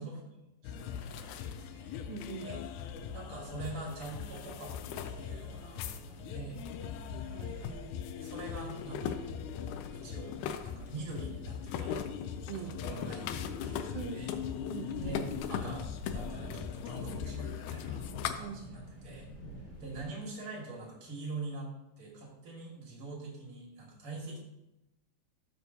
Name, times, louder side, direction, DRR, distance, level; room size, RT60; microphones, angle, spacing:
voice 1, 0.0-1.9 2.4-2.6 3.1-6.6 8.1-9.5 9.9-10.4 10.6-12.0 12.5-14.3 15.0-18.1 18.3-19.3 19.8-24.4, right 3 dB, 45° right, -2 dB, 2.4 m, -44 dB
sound 1, 0.6-18.4, left 8 dB, 80° left, 1.8 m, -39 dB
voice 2, 2.1-2.6 7.1-8.0 12.5-12.8 13.9-14.2 14.7-15.2 18.4-18.6, right 6 dB, 75° right, 5 dB, 2.0 m, -43 dB
sound 2, 2.8-20.0, right 1 dB, 55° left, 1.9 m, -51 dB
12.5 x 7.0 x 2.7 m, 0.94 s
omnidirectional pair, 3.9 m